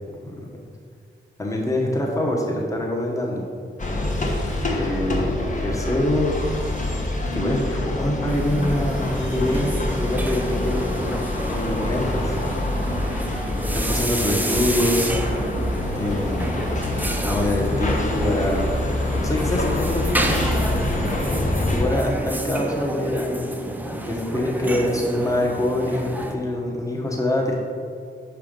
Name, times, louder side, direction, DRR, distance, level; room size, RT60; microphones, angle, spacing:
voice 1, 1.4-3.5 4.7-5.3 5.6-6.3 7.3-12.4 13.7-15.2 15.9-16.5 17.2-18.7 19.0-20.7 21.6-23.5 23.9-27.6, left 1 dB, 15° left, -2 dB, 1.0 m, -25 dB
sound 1, 3.8-21.8, left 1 dB, 40° left, 1.0 m, -26 dB
sound 2, 8.3-26.3, right 1 dB, 10° right, 0.5 m, -30 dB
6.3 x 4.5 x 5.1 m, 2.3 s
wide cardioid pair, 135°, 20 cm